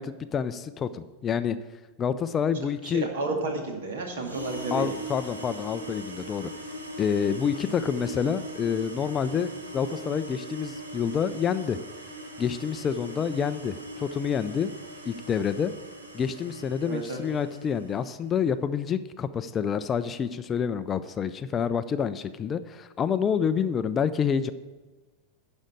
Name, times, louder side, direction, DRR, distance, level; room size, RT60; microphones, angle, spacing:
voice 1, 0.0-1.6 2.0-3.1 4.7-6.5 7.0-11.8 12.4-14.7 15.1-15.7 16.1-24.5, left 7 dB, 25° left, 12 dB, 0.4 m, -28 dB
voice 2, 2.8-4.9 16.8-17.2, right 2 dB, 60° right, 2 dB, 2.2 m, -31 dB
sound 1, 4.2-18.1, right 1 dB, 75° right, 1.5 m, -40 dB
11.5 x 5.2 x 8.5 m, 1.3 s
figure-of-eight pair, 90°, 0 cm